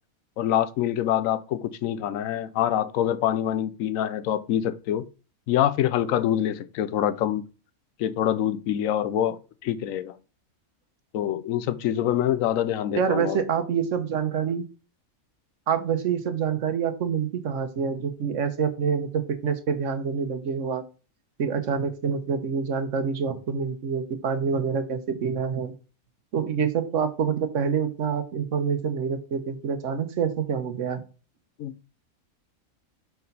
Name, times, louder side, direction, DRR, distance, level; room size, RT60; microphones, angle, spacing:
voice 1, 0.4-5.0 5.5-7.4 8.0-10.2 11.1-13.4 31.6-31.8, left 11 dB, 75° left, 1.0 m, -25 dB
voice 2, 12.9-14.7 15.7-20.8 21.4-25.7 26.3-31.0, right 6 dB, 60° right, 1.2 m, -26 dB
4.8 x 4.6 x 5.3 m
omnidirectional pair, 1.5 m